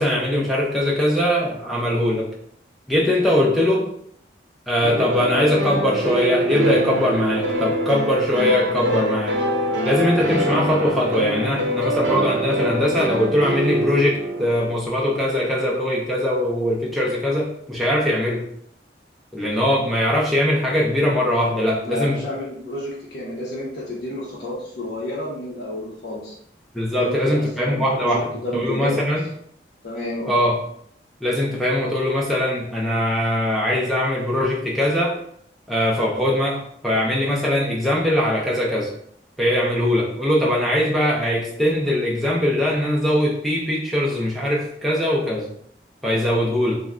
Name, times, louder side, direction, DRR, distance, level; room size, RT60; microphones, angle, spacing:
voice 1, 0.0-2.3 2.9-3.9 4.7-9.4 9.8-18.4 19.3-22.2 26.7-29.2 30.3-30.6 31.2-35.2 35.7-38.9 39.4-45.5 46.0-46.8, left 1 dB, ahead, -4 dB, 0.4 m, -21 dB
sound 1, 4.8-14.7, equal, 90° right, 0.5 m, -24 dB
voice 2, 21.8-26.3 27.0-29.0 29.8-30.3, left 1 dB, 55° left, -6 dB, 0.6 m, -30 dB
2.3 x 2.1 x 3.5 m, 0.68 s
head